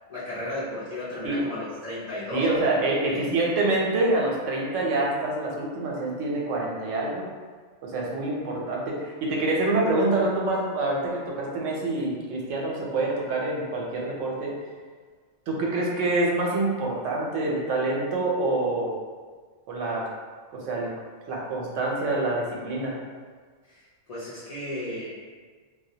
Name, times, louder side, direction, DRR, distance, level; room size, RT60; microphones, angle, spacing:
voice 1, 0.1-2.6 3.1-3.2 23.6-23.8 24.1-25.1, left 1 dB, 50° left, -11 dB, 0.4 m, -34 dB
voice 2, 2.3-7.3 7.8-14.5 15.5-18.9 19.7-20.0 20.5-20.9 21.3-23.0, right 2 dB, 85° right, -2 dB, 0.9 m, -26 dB
2.2 x 2.1 x 2.7 m, 1.5 s
omnidirectional pair, 1.3 m